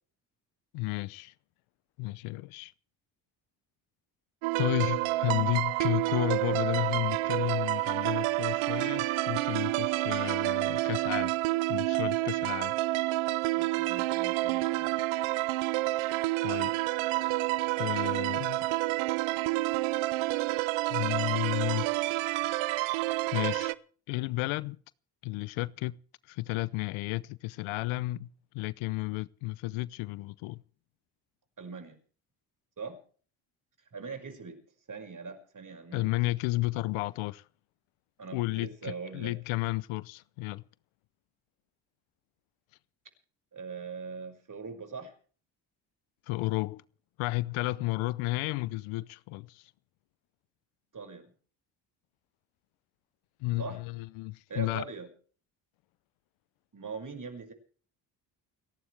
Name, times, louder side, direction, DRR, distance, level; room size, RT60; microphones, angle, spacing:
voice 1, 0.7-1.3 2.0-2.7 4.6-11.3 11.7-12.7 16.4-16.8 17.8-18.7 20.9-21.9 23.3-23.7 24.1-24.8 25.2-26.0 26.3-28.3 28.5-30.6 35.9-37.4 38.3-40.6 46.3-46.8 47.2-49.7 53.4-54.8, left 20 dB, 85° left, 0.8 m, -32 dB
sound 1, 4.4-23.7, right 19 dB, 85° right, 0.8 m, -29 dB
voice 2, 13.5-15.0 31.6-32.0 32.8-33.0 33.9-34.6 34.9-36.2 38.2-39.4 43.5-45.1 50.9-51.3 53.6-53.8 54.5-55.1 56.7-57.5, right 5 dB, 40° right, 5.9 m, -41 dB
29.5 x 11.5 x 3.4 m
supercardioid pair, 60°, 48 cm